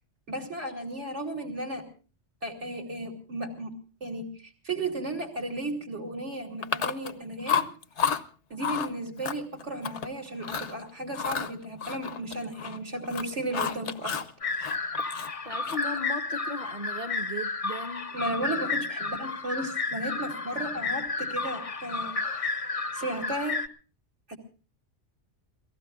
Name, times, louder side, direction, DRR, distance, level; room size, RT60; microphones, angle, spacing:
voice 1, 0.3-1.8 2.4-3.7 4.0-4.2 4.6-7.7 8.5-14.2 18.1-22.1 22.9-23.6 24.3-24.4, right 1 dB, 70° right, 3 dB, 3.5 m, -34 dB
Chewing mastication, 6.6-7.2 7.5-8.2 8.6-8.9 9.2-10.1 10.4-10.7 11.1-12.8 13.0-14.3 14.6-16.0, left 7 dB, 70° left, 1.2 m, -30 dB
sound 1, 14.4-23.7, left 3 dB, 35° left, 0.8 m, -32 dB
voice 2, 15.4-18.1, left 1 dB, 40° right, 6 dB, 1.5 m, -37 dB
28.5 x 18.0 x 2.4 m, 0.36 s
omnidirectional pair, 1.2 m